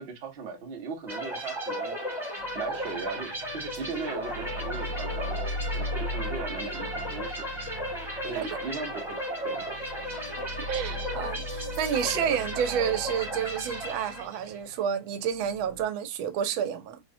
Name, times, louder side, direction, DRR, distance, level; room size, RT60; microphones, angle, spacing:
voice 1, 0.0-2.0 2.5-7.4 8.2-9.7, right 4 dB, 55° right, 0.6 m, -38 dB
sound 1, 1.1-14.6, equal, ahead, 0.7 m, -35 dB
sound 2, 2.4-15.8, left 1 dB, 65° left, 1.9 m, -39 dB
voice 2, 10.6-17.0, right 8 dB, 85° right, 1.4 m, -30 dB
4.3 x 2.1 x 2.5 m
omnidirectional pair, 2.2 m